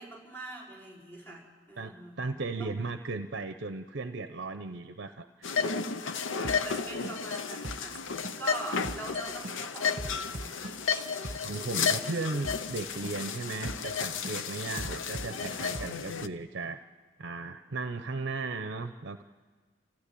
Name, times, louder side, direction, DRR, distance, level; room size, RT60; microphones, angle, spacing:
voice 1, 0.0-2.2 2.6-2.7 5.6-5.7 6.3-10.7 11.5-12.1 13.0-13.1 14.5-14.7, right 2 dB, 10° left, -5 dB, 4.8 m, -43 dB
voice 2, 1.8-5.5 8.8-8.9 11.4-16.8 17.2-19.2, right 3 dB, 60° right, 8 dB, 0.7 m, -36 dB
sound 1, 5.4-16.3, left 6 dB, 80° left, 0.7 m, -33 dB
sound 2, 6.4-6.8 7.0-7.4 7.6-8.0 8.2-8.6 8.8-9.2 9.4-11.6 11.8-12.2 12.4-12.8 13.0-13.4 13.6-14.0 14.2-15.9, right 2 dB, 40° right, 1.2 m, -40 dB
29.0 x 15.0 x 8.5 m, 1.5 s
head